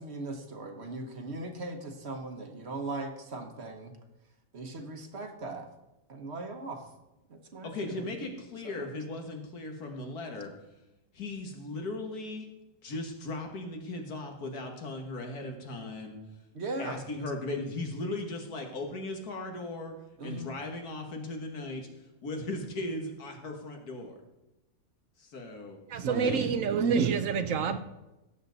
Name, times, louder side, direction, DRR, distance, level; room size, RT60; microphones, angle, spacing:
voice 1, 0.0-4.0 4.5-5.7 6.1-6.9 7.3-8.1 8.6-8.9 16.5-17.0 20.2-20.5 26.1-26.4, right 2 dB, 50° right, 1.3 m, -39 dB
voice 2, 7.6-10.5 11.1-12.5 12.8-16.2 16.8-19.9 20.2-21.9 22.2-24.1 25.2-26.5, left 2 dB, 90° left, 2.1 m, -37 dB
voice 3, 25.9-27.8, right 6 dB, 65° right, 1.0 m, -27 dB
16.5 x 7.3 x 4.0 m
omnidirectional pair, 1.6 m